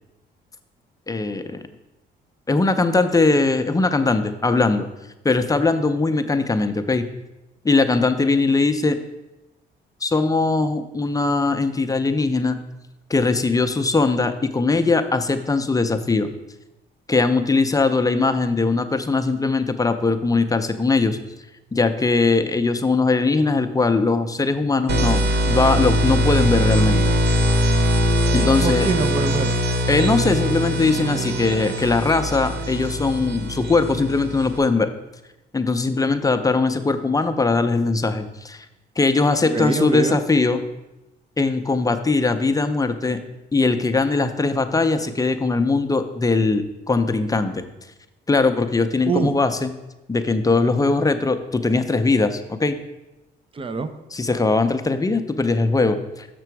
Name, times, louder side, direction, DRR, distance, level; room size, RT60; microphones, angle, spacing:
voice 1, 1.1-1.6 2.5-4.9 5.2-7.1 7.6-9.0 10.0-12.6 13.1-16.3 17.1-21.2 21.7-27.0 28.3-28.9 29.9-34.9 35.5-38.7 39.0-40.6 41.4-43.2 43.5-47.6 48.3-49.7 50.1-52.8 54.1-56.3, left 3 dB, 15° left, 8 dB, 0.6 m, -20 dB
sound 1, 24.9-34.6, equal, 55° right, 0.9 m, -21 dB
voice 2, 28.6-29.5 39.4-40.2 49.1-49.3 53.5-53.9, right 4 dB, 25° right, 11 dB, 0.6 m, -24 dB
6.8 x 6.0 x 4.6 m, 0.98 s
cardioid pair, 90°, 20 cm